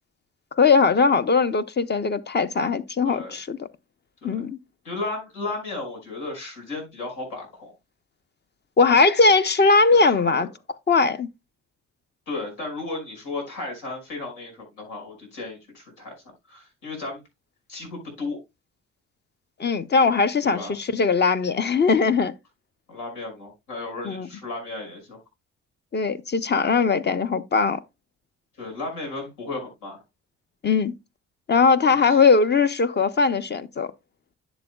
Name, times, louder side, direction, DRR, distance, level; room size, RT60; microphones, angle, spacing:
voice 1, 0.6-3.7 4.2-4.6 8.8-10.5 10.9-11.3 19.6-22.3 24.0-24.3 25.9-27.8 30.6-30.9 31.5-33.9, left 4 dB, 35° left, 0.7 m, -20 dB
voice 2, 3.1-3.4 4.2-4.5 4.8-7.7 9.9-10.5 12.3-16.1 16.5-17.2 17.7-18.4 20.4-20.7 22.9-25.2 28.6-30.0 31.9-32.2, left 3 dB, 85° left, 5.5 m, -34 dB
11.0 x 7.0 x 2.3 m
cardioid pair, 90°, 30 cm